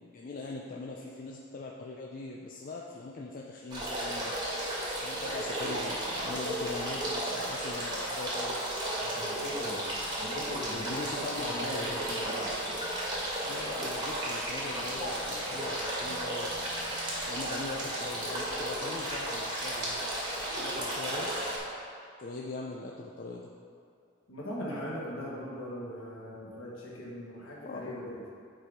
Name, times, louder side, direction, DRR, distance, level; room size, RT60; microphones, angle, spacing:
voice 1, 0.0-4.3 5.0-8.6 10.7-12.0 13.5-16.7 17.3-20.1 20.6-21.3 22.2-23.5 27.6-27.8, left 3 dB, 45° left, -1 dB, 0.5 m, -41 dB
sound 1, 3.7-21.6, right 1 dB, 20° right, 1.9 m, -34 dB
voice 2, 9.0-9.8 10.2-11.1 11.4-12.5 24.3-28.2, equal, 75° left, -5 dB, 1.5 m, -40 dB
7.3 x 4.7 x 5.1 m, 2.4 s
head